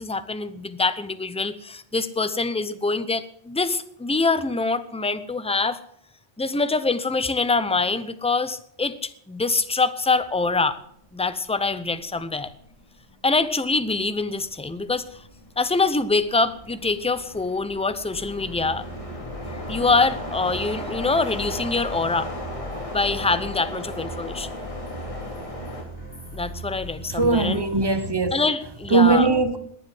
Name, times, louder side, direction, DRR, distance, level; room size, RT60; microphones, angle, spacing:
voice 1, 0.0-5.8 6.4-10.8 11.1-12.5 13.2-15.0 15.6-18.8 19.4-22.3 22.9-24.5 26.3-27.6 28.3-29.3, left 3 dB, 5° left, 0.6 m, -24 dB
sound 1, 10.8-11.1 11.5-25.8, left 1 dB, 25° left, 2.8 m, -37 dB
sound 2, 18.1-28.0, right 1 dB, 45° left, 5.4 m, -39 dB
voice 2, 27.1-28.4 28.9-29.6, right 3 dB, 20° right, 1.0 m, -20 dB
20.0 x 7.6 x 7.7 m
omnidirectional pair, 1.3 m